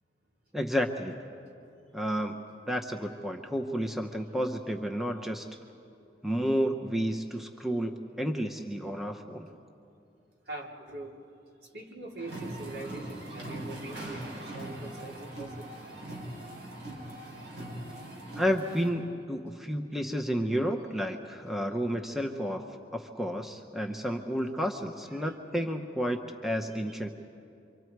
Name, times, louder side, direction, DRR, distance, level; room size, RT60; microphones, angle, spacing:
voice 1, 0.5-1.2 1.9-2.4 2.7-5.5 6.2-9.5 18.4-22.6 22.9-27.1, equal, ahead, 3 dB, 0.8 m, -31 dB
voice 2, 10.4-11.1 11.6-15.7 17.1-17.2 19.4-19.5 20.4-20.5 25.1-25.4, right 2 dB, 70° right, -2 dB, 3.3 m, -43 dB
sound 1, 12.2-18.9, right 1 dB, 90° right, 5.1 m, -41 dB
28.0 x 25.0 x 4.7 m, 2.6 s
head